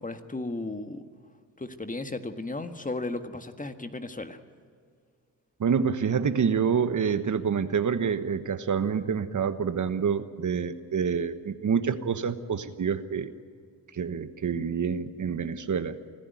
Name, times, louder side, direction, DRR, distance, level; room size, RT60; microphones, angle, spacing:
voice 1, 0.0-1.0 1.6-4.4, left 2 dB, 20° left, 8 dB, 1.7 m, -35 dB
voice 2, 5.6-13.3 14.0-15.9, right 6 dB, 55° right, 11 dB, 1.3 m, -27 dB
25.5 x 14.0 x 9.4 m, 2.1 s
cardioid pair, 70°, 36 cm